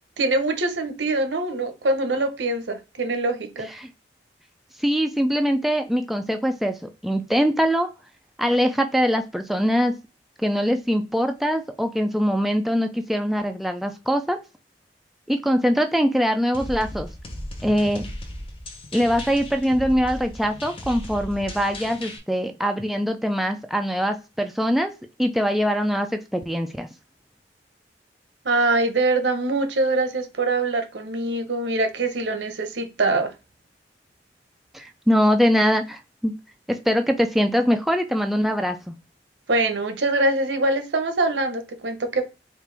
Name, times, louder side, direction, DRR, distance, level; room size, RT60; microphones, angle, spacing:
voice 1, 0.2-3.7 28.4-33.3 39.5-42.2, right 2 dB, 85° right, 0.8 m, -23 dB
voice 2, 4.8-6.8 7.0-7.9 8.4-10.0 10.4-14.4 15.3-17.1 17.6-18.1 18.9-24.9 25.2-26.9 34.7-36.3 36.7-39.0, equal, ahead, 0.3 m, -22 dB
sound 1, 16.5-22.2, left 1 dB, 30° left, 0.7 m, -36 dB
4.5 x 2.5 x 3.3 m
head